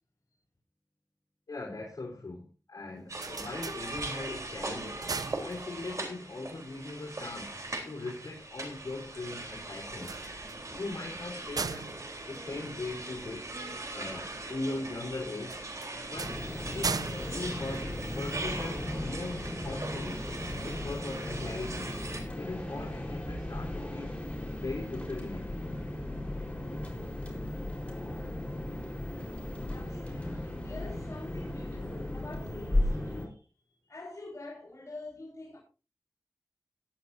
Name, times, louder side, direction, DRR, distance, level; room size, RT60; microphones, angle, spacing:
voice 1, 1.5-5.1 5.4-7.6 7.8-10.2 10.7-11.9 12.3-13.5 13.9-15.6 15.9-20.3 20.6-21.9 22.4-24.2 24.5-25.5, left 2 dB, 75° left, 3.8 m, -40 dB
sound 1, 2.9-4.4 4.8-6.1 9.9-13.3 15.4-18.5, right 5 dB, 85° right, 0.5 m, -39 dB
sound 2, 3.1-22.2, right 2 dB, 60° right, 3.6 m, -40 dB
sound 3, 16.2-33.3, left 1 dB, 20° left, 4.2 m, -36 dB
voice 2, 29.7-33.4 33.8-35.6, left 2 dB, 55° left, 4.5 m, -46 dB
18.0 x 11.0 x 2.7 m
wide cardioid pair, 65°, 6 cm